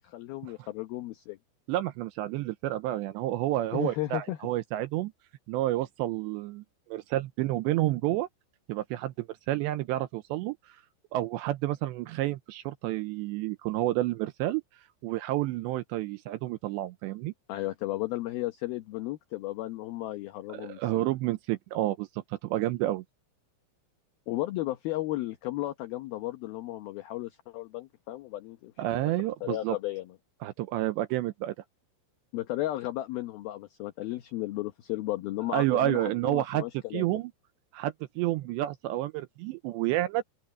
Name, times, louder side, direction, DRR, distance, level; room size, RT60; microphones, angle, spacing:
voice 1, 0.0-1.4 3.7-4.4 17.5-21.1 24.3-28.7 29.4-30.1 32.3-37.2, left 16 dB, 85° left, 2.1 m, -34 dB
voice 2, 1.7-5.1 5.5-6.6 6.9-8.3 8.7-10.8 11.1-14.6 15.0-17.3 20.5-23.0 28.8-29.8 30.4-31.6 35.5-36.7 36.9-37.3 37.7-40.2, right 15 dB, 85° right, 2.6 m, -30 dB
open air
omnidirectional pair, 5.6 m